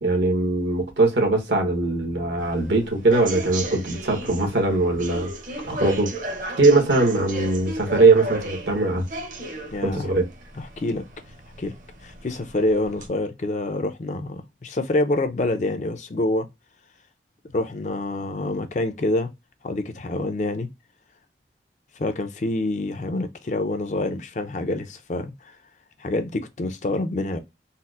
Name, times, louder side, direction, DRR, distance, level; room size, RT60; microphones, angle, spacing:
voice 1, 0.0-5.3 5.6-6.1 6.4-9.0 9.8-10.2, right 2 dB, 85° right, 1.2 m, -21 dB
sound 1, 2.4-13.1, right 1 dB, 45° right, 0.7 m, -35 dB
voice 2, 9.7-10.1 10.6-11.0 11.6-11.7 12.0-16.5 17.5-19.3 19.6-20.7 22.0-25.5 26.0-27.4, left 2 dB, 40° left, 0.4 m, -26 dB
4.1 x 2.0 x 2.4 m
head